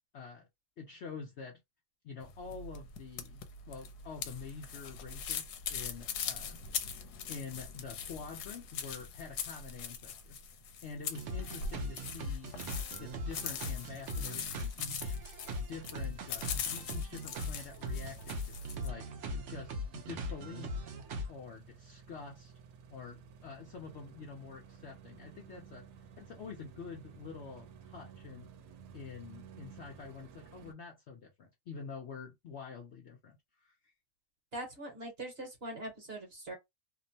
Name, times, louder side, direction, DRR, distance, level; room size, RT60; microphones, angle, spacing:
voice 1, 0.1-0.5 0.8-1.6 2.0-3.4 3.7-6.8 7.3-10.4 10.8-12.5 13.0-15.2 15.6-20.9 21.3-22.5 22.9-25.8 26.2-28.5 28.9-33.9, left 5 dB, 60° left, 0.7 m, -47 dB
sound 1, 2.2-18.9, left 7 dB, 80° left, 1.1 m, -42 dB
sound 2, 11.1-21.3, left 1 dB, 60° right, 0.8 m, -40 dB
sound 3, 17.2-30.7, right 6 dB, 90° right, 1.2 m, -55 dB
voice 2, 34.5-36.6, right 1 dB, 45° right, 1.1 m, -42 dB
2.9 x 2.1 x 2.6 m
omnidirectional pair, 1.7 m